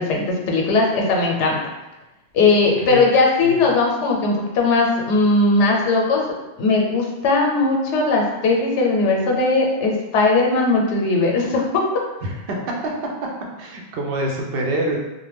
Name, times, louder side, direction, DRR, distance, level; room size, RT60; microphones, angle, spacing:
voice 1, 0.0-1.6 2.3-6.2 6.6-11.6, left 3 dB, 90° left, 0 dB, 0.9 m, -18 dB
voice 2, 12.2-12.6 13.6-15.0, right 1 dB, 65° right, -1 dB, 0.7 m, -25 dB
2.5 x 2.1 x 3.2 m, 1.0 s
omnidirectional pair, 1.1 m